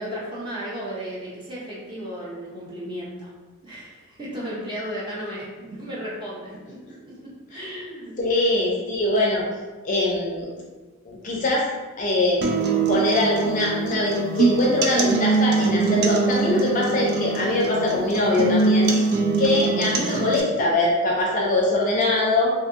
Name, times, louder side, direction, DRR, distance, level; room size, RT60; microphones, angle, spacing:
voice 1, 0.0-3.3 3.6-6.8 7.0-8.1, equal, 20° right, -6 dB, 0.7 m, -34 dB
voice 2, 8.2-9.5 9.8-10.5 11.1-11.7 12.0-12.4 12.9-19.1 19.4-22.5, left 2 dB, 35° left, -3 dB, 0.5 m, -22 dB
sound 1, 12.4-20.4, right 4 dB, 50° right, 0.3 m, -23 dB
2.6 x 2.6 x 2.5 m, 1.3 s
head